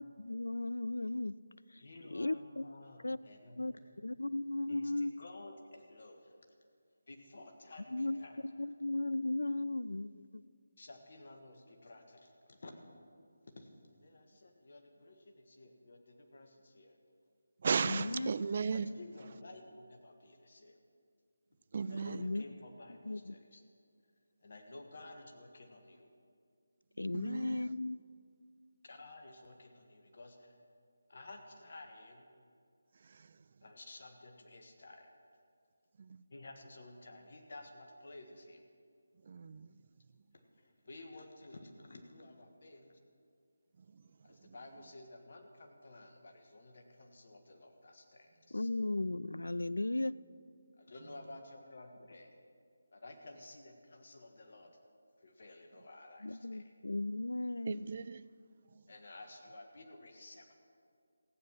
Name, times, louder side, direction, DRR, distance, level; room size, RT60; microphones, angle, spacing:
voice 1, 0.0-1.4 1.7-2.7 3.0-3.2 3.6-3.7 4.0-5.2 7.9-8.2 8.6-10.4 17.8-18.3 22.1-22.4 23.1-23.4 27.0-28.0 48.5-50.1 56.2-57.9, left 2 dB, 75° left, 18 dB, 0.3 m, -36 dB
voice 2, 1.8-4.0 4.7-6.3 7.1-8.4 10.8-12.7 13.5-13.7 14.0-17.0 18.7-20.8 21.9-23.6 24.4-26.1 28.8-30.6 31.1-32.2 33.6-35.1 36.3-38.7 40.3-43.0 44.2-48.7 50.8-52.3 52.9-54.7 55.2-56.7 58.9-60.5, left 2 dB, 50° left, 3 dB, 1.5 m, -53 dB
voice 3, 17.6-18.9 21.7-22.2 27.1-27.6 39.3-39.7 57.7-58.2, right 5 dB, 40° right, 16 dB, 0.4 m, -35 dB
15.0 x 9.3 x 6.2 m, 2.2 s
figure-of-eight pair, 155°, 0 cm